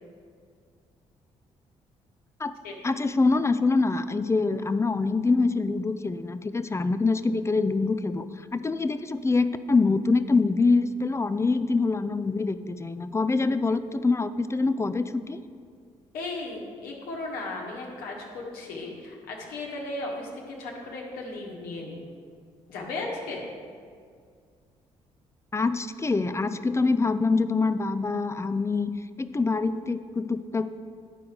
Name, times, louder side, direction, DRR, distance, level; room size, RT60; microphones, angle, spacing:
voice 1, 2.8-15.4 25.5-28.9 29.2-30.7, left 3 dB, 20° left, 12 dB, 0.4 m, -25 dB
voice 2, 16.1-22.0 22.7-23.5, left 2 dB, 75° left, -2 dB, 1.5 m, -36 dB
10.5 x 4.6 x 5.0 m, 2.1 s
hypercardioid pair, 50°, 16 cm